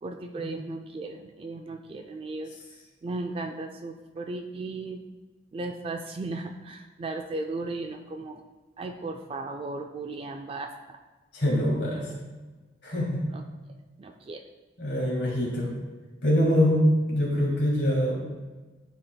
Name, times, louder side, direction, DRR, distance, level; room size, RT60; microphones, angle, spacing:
voice 1, 0.0-2.6 3.0-5.0 5.5-8.4 8.8-11.0 11.9-12.0 13.3-13.4 14.0-14.4, right 2 dB, 30° right, 4 dB, 0.3 m, -36 dB
voice 2, 11.3-12.1 12.8-13.2 14.8-15.7 16.2-18.2, equal, 75° left, -3 dB, 1.9 m, -24 dB
10.5 x 4.2 x 2.2 m, 1.3 s
head